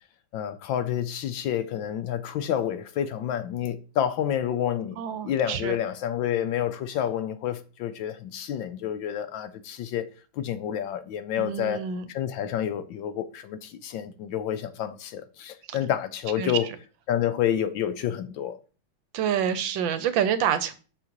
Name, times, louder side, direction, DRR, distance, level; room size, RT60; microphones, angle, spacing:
voice 1, 0.3-10.1 10.4-11.8 12.1-16.7 17.1-18.6, left 10 dB, 75° left, 1.2 m, -29 dB
voice 2, 5.0-5.8 11.4-12.0 15.7-15.8 16.4-16.5 19.1-20.7, right 8 dB, 70° right, 1.3 m, -27 dB
6.5 x 5.9 x 3.0 m
omnidirectional pair, 2.3 m